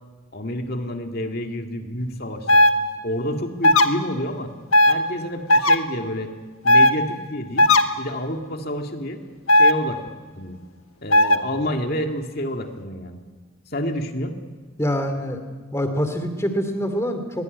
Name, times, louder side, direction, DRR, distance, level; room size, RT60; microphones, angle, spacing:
voice 1, 0.3-2.7 3.0-4.5 4.9-6.3 6.6-7.7 8.0-9.2 9.5-10.0 10.3-10.6 11.0-13.2 13.7-14.3, equal, 50° left, 4 dB, 2.2 m, -29 dB
sound 1, 2.5-2.7 3.6-3.9 4.7-4.9 5.5-5.8 6.7-6.9 7.6-7.8 9.5-9.7 11.1-11.4, left 1 dB, 90° left, 1.5 m, -14 dB
voice 2, 14.8-15.4 15.7-17.4, equal, 15° left, 7 dB, 2.6 m, -25 dB
23.0 x 20.5 x 9.5 m, 1.5 s
head